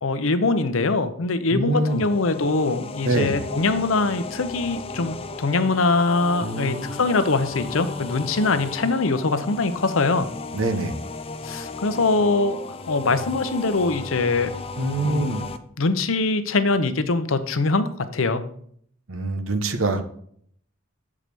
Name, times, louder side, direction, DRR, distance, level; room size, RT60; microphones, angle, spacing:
voice 1, 0.0-10.3 11.4-12.6 12.9-14.5 15.0-15.4 15.8-18.4, left 3 dB, 75° left, 11 dB, 0.8 m, -23 dB
voice 2, 1.5-2.1 3.0-3.4 6.4-6.9 10.5-11.0 14.8-15.4 19.1-20.0, right 2 dB, 80° right, 9 dB, 1.1 m, -24 dB
sound 1, 1.8-15.6, left 3 dB, 30° left, 0.5 m, -35 dB
7.5 x 4.9 x 6.8 m, 0.63 s
head